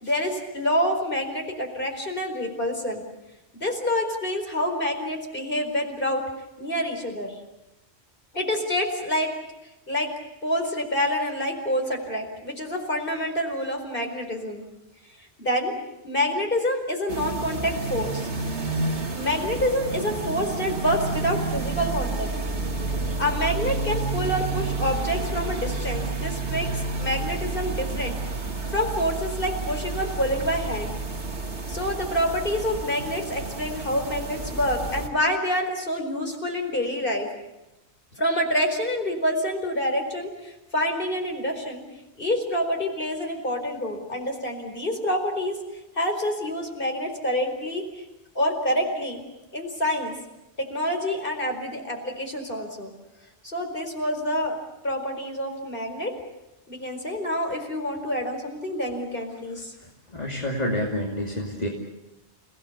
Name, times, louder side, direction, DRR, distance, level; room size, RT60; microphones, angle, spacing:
voice 1, 0.0-3.0 3.5-6.2 6.6-7.4 8.3-9.3 9.9-10.1 10.4-14.6 15.4-15.7 16.0-18.3 19.1-22.3 23.2-28.2 28.7-30.9 31.7-37.3 38.2-41.8 42.2-45.6 46.0-48.1 48.3-49.2 49.5-50.1 50.6-52.9 53.4-54.6 54.8-56.1 56.7-59.7, equal, 50° left, 3 dB, 4.8 m, -27 dB
sound 1, 17.1-35.1, right 3 dB, 85° right, 2.6 m, -30 dB
voice 2, 60.1-61.7, left 1 dB, 35° left, 0 dB, 3.0 m, -28 dB
30.0 x 18.0 x 8.4 m, 0.96 s
omnidirectional pair, 1.1 m